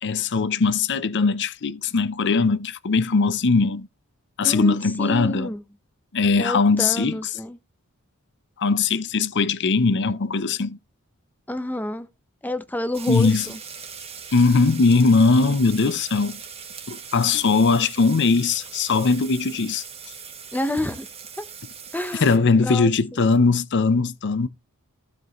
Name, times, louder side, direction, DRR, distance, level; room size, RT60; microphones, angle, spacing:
voice 1, 0.0-3.9 4.4-5.5 6.1-7.2 8.6-10.8 13.1-13.5 14.3-16.4 16.9-19.8 22.2-24.5, left 4 dB, 55° left, 0.6 m, -20 dB
voice 2, 4.4-5.6 6.4-7.6 11.5-12.1 12.4-13.6 20.5-21.1 21.4-21.5 21.9-22.9, left 1 dB, 10° left, 0.9 m, -29 dB
sound 1, 12.9-22.4, right 6 dB, 30° right, 1.6 m, -40 dB
15.0 x 5.2 x 3.1 m
head